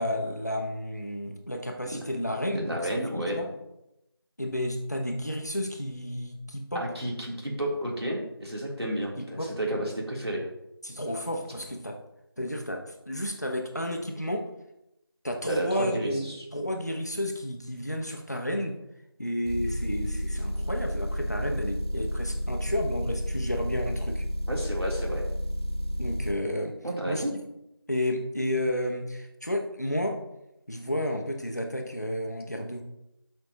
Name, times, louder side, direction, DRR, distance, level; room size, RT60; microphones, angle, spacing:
voice 1, 0.0-3.5 4.4-6.9 9.2-9.5 10.8-12.0 12.4-14.4 15.2-18.8 19.2-24.2 26.0-26.8 27.0-27.2 27.9-30.2 30.7-32.8, left 1 dB, 45° left, 3 dB, 1.1 m, -31 dB
voice 2, 2.5-3.4 6.7-10.4 15.5-16.4 24.5-25.2 26.8-27.3, right 1 dB, 90° right, -2 dB, 3.1 m, -31 dB
Motor vehicle (road) / Engine, 19.4-26.4, equal, 80° left, 1.2 m, -31 dB
11.0 x 5.9 x 2.9 m, 0.86 s
figure-of-eight pair, 180°, 13 cm